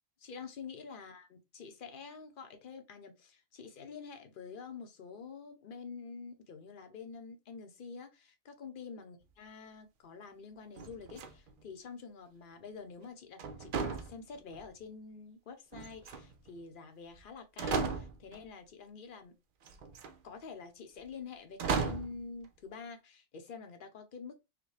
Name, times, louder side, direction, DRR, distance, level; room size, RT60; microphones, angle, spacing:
voice 1, 0.2-19.3 20.2-24.4, left 5 dB, 50° left, 0.9 m, -47 dB
sound 1, 10.8-11.6 13.4-14.7 15.7-16.5 17.2-17.3 17.6-18.4 19.6-20.1 21.6-22.2, right 5 dB, 55° right, 0.7 m, -36 dB
4.9 x 2.2 x 3.2 m
omnidirectional pair, 1.2 m